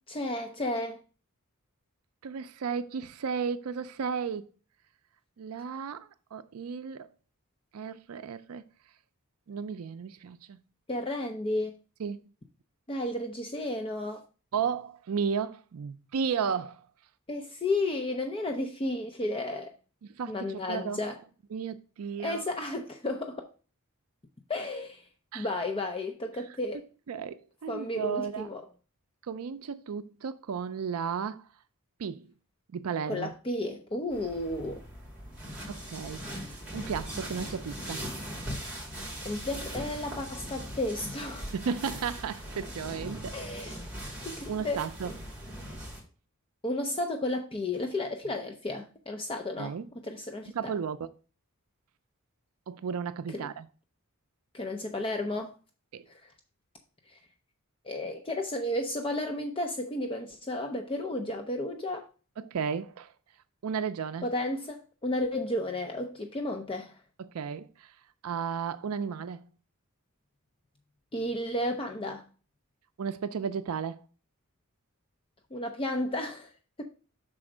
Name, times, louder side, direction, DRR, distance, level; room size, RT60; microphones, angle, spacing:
voice 1, 0.1-1.0 10.9-11.7 12.9-14.2 17.3-19.7 20.2-21.2 22.2-23.5 24.5-25.1 25.3-26.8 27.7-28.6 33.1-34.8 39.2-41.5 43.3-43.7 44.2-44.8 46.6-50.5 53.3-53.5 54.5-55.5 56.1-56.3 57.1-57.2 57.8-62.1 64.2-67.0 71.1-72.3 75.5-76.5, left 1 dB, 25° left, 0.6 m, -33 dB
voice 2, 2.2-4.5 5.4-7.1 7.7-8.6 9.5-10.6 12.0-12.2 14.5-16.9 20.1-21.0 21.5-22.4 25.3-25.5 27.1-28.5 29.2-31.4 32.0-32.2 32.7-33.3 35.7-38.0 41.5-43.4 44.0-44.1 44.5-45.1 49.6-49.9 50.5-51.1 52.7-53.7 55.9-56.0 62.4-63.1 63.6-64.3 67.2-67.9 68.2-69.4 73.0-74.0, right 6 dB, 70° right, 0.4 m, -34 dB
sound 1, 34.1-46.0, equal, 5° right, 2.6 m, -40 dB
6.1 x 4.3 x 4.9 m
head